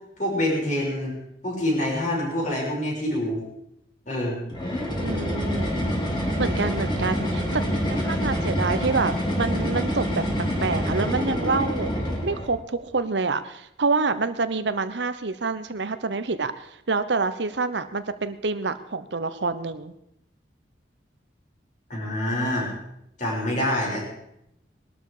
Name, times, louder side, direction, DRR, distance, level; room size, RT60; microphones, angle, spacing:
voice 1, 0.2-1.2 1.4-3.4 4.0-4.4 21.9-22.7 23.2-24.0, left 1 dB, 40° left, -2 dB, 6.3 m, -26 dB
sound 1, 4.5-12.5, equal, 25° left, 3.5 m, -26 dB
voice 2, 5.0-5.8 6.4-10.2 10.6-11.9 12.2-19.9, right 4 dB, 75° right, 11 dB, 0.9 m, -27 dB
20.0 x 12.5 x 5.0 m, 0.81 s
head